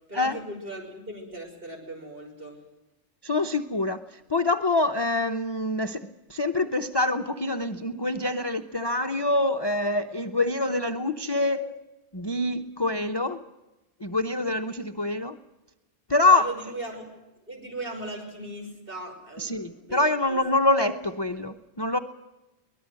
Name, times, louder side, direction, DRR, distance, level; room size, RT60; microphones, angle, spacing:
voice 1, 0.1-2.6 16.3-17.2 17.5-20.4, right 1 dB, 45° right, 1 dB, 6.1 m, -38 dB
voice 2, 3.2-11.8 12.1-13.4 14.0-15.4 16.1-16.5 19.4-22.0, left 2 dB, 25° left, 9 dB, 0.7 m, -25 dB
23.5 x 19.5 x 7.7 m, 1.0 s
omnidirectional pair, 1.3 m